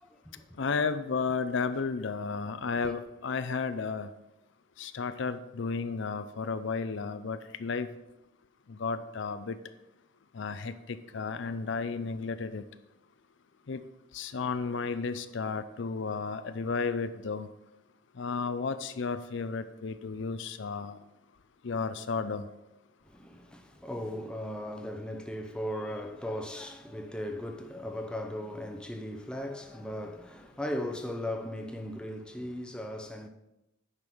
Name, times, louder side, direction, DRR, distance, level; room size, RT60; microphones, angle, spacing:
voice 1, 0.0-0.4 2.8-2.9 23.1-33.3, left 1 dB, 5° left, 0.7 m, -37 dB
voice 2, 0.6-4.1 4.8-7.9 8.7-9.6 10.3-12.7 13.7-13.8 14.1-17.5 18.2-21.0 21.6-22.5, left 4 dB, 65° left, 0.5 m, -33 dB
9.8 x 5.3 x 6.0 m
head